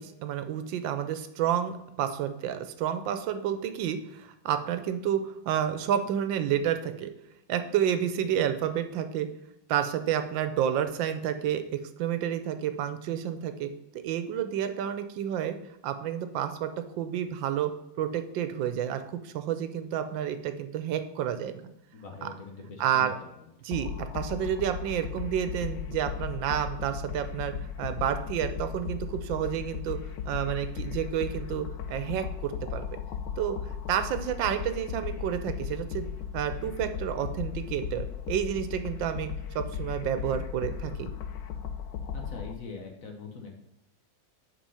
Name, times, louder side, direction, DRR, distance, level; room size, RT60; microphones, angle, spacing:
voice 1, 0.0-7.1 7.5-9.3 9.7-13.7 14.0-15.6 15.8-16.7 17.0-21.5 22.2-22.3 22.8-23.1 23.6-32.9 33.4-36.1 36.3-39.3 39.5-41.1, right 9 dB, 85° right, 9 dB, 1.4 m, -30 dB
voice 2, 21.9-23.5 42.1-43.6, left 4 dB, 50° left, 3 dB, 1.3 m, -43 dB
sound 1, 23.7-42.5, left 8 dB, 80° left, 1.3 m, -36 dB
6.0 x 5.0 x 5.5 m, 0.86 s
omnidirectional pair, 2.0 m